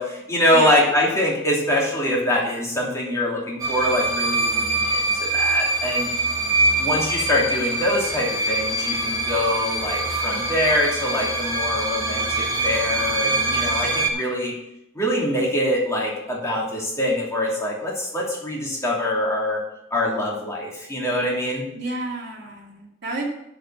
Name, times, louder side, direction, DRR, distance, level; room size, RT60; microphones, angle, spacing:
voice 1, 0.0-6.1 6.8-14.5 14.9-19.6 19.9-21.7, left 1 dB, 15° left, -4 dB, 2.9 m, -24 dB
voice 2, 0.5-0.9 6.4-7.0 21.7-23.3, right 2 dB, 60° right, -2 dB, 2.6 m, -32 dB
sound 1, 3.6-14.1, right 2 dB, 15° right, 1.7 m, -24 dB
7.7 x 7.1 x 7.6 m, 0.80 s
head